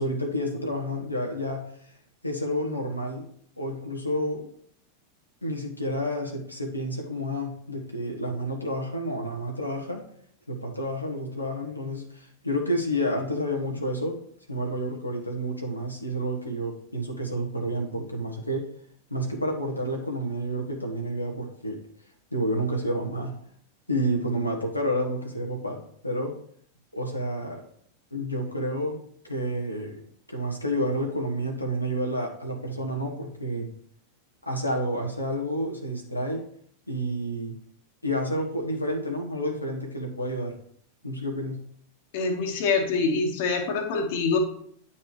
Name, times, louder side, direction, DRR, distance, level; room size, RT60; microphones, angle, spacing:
voice 1, 0.0-1.9 2.2-3.3 3.6-4.5 5.4-10.0 10.5-14.2 14.5-18.7 19.1-21.9 22.3-23.3 23.9-26.4 26.9-27.6 28.1-30.0 30.3-33.7 34.4-36.4 36.9-37.6 38.0-40.6 41.0-41.6, equal, 85° left, 0 dB, 1.4 m, -30 dB
voice 2, 42.1-44.4, left 4 dB, 50° left, 4 dB, 1.6 m, -25 dB
10.0 x 5.8 x 3.2 m, 0.63 s
figure-of-eight pair, 90°, 0 cm